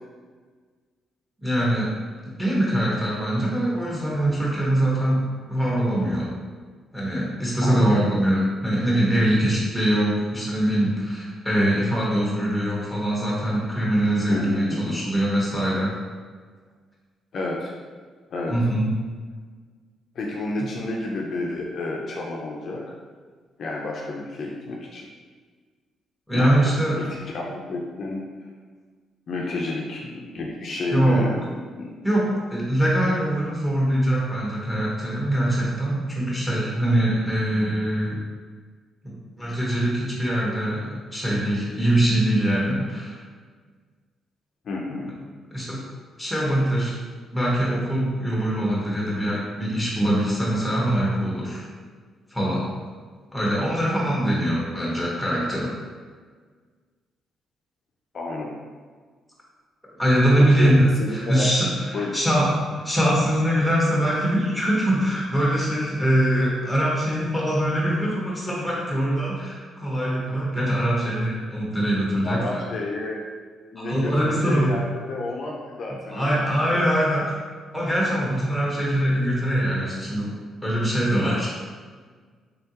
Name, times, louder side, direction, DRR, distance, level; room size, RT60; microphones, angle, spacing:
voice 1, 1.4-1.9 2.4-5.2 5.5-6.3 6.9-15.9 18.5-18.9 26.3-27.0 30.9-31.2 32.0-38.2 39.0-43.2 45.5-45.8 46.2-47.0 47.3-51.6 52.3-52.7 53.3-55.7 60.0-72.6 73.9-74.8 76.1-77.4 77.7-80.3 80.6-81.5, right 1 dB, ahead, -5 dB, 1.4 m, -23 dB
voice 2, 7.6-8.1 14.3-15.0 17.3-17.7 18.3-18.5 20.1-22.8 23.6-25.1 26.3-28.2 29.3-31.4 31.8-31.9 44.6-45.1 58.1-58.6 60.4-60.7 61.0-61.5 61.9-62.1 72.2-73.2 73.7-76.9, left 2 dB, 55° left, -2 dB, 0.6 m, -30 dB
3.7 x 3.5 x 2.9 m, 1.5 s
cardioid pair, 90°, 0 cm